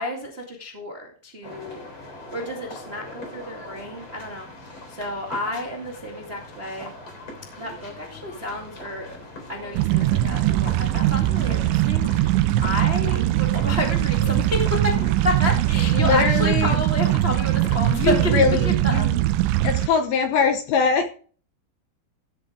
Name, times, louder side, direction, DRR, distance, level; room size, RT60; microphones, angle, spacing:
voice 1, 0.0-1.9 2.3-4.5 4.9-6.9 7.6-9.2 9.5-19.1 19.4-19.5, left 1 dB, 35° right, 0 dB, 0.9 m, -30 dB
sound 1, 1.4-18.4, left 2 dB, 30° left, 3.7 m, -41 dB
sound 2, 9.8-19.9, right 14 dB, 85° right, 3.1 m, -21 dB
voice 2, 15.9-16.8 17.9-19.2 19.6-21.1, left 5 dB, 70° left, 6 dB, 2.5 m, -22 dB
15.5 x 8.2 x 3.6 m, 0.42 s
omnidirectional pair, 5.4 m